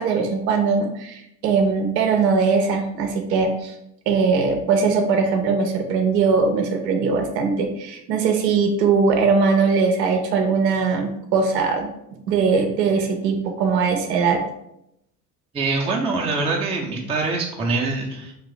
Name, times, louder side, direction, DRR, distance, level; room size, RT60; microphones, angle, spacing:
voice 1, 0.0-3.7 4.1-11.9 12.3-14.4, right 5 dB, 80° right, 5 dB, 0.6 m, -20 dB
voice 2, 15.5-18.3, right 3 dB, 15° right, -1 dB, 0.5 m, -24 dB
2.8 x 2.4 x 3.8 m, 0.80 s
hypercardioid pair, 65°, 49 cm